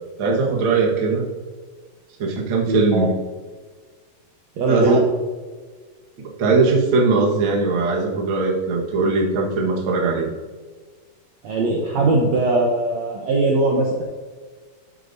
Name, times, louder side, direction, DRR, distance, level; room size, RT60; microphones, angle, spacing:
voice 1, 0.2-1.3 2.2-3.1 4.7-5.0 6.4-10.3, right 3 dB, 50° right, -1 dB, 1.7 m, -20 dB
voice 2, 4.6-5.0 11.4-14.0, right 2 dB, 65° right, -1 dB, 1.9 m, -20 dB
12.0 x 8.4 x 2.7 m, 1.4 s
omnidirectional pair, 4.0 m